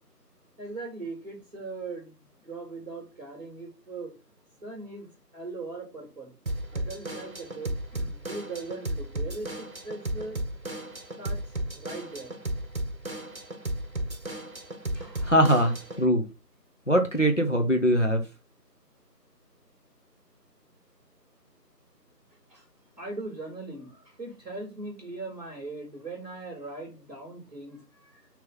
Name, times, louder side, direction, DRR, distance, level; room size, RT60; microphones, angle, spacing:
voice 1, 0.6-4.2 4.6-6.3 6.7-10.4 11.2-11.4 11.7-12.4 14.9-15.4 15.6-15.7 22.5-22.7 23.0-28.3, right 3 dB, 25° right, 3.0 m, -40 dB
Drum kit / Drum, 6.5-16.1, right 1 dB, 55° right, 1.2 m, -34 dB
voice 2, 15.2-16.2 16.9-18.2, equal, 45° left, 1.1 m, -22 dB
6.5 x 3.4 x 5.5 m
figure-of-eight pair, 175°, 49 cm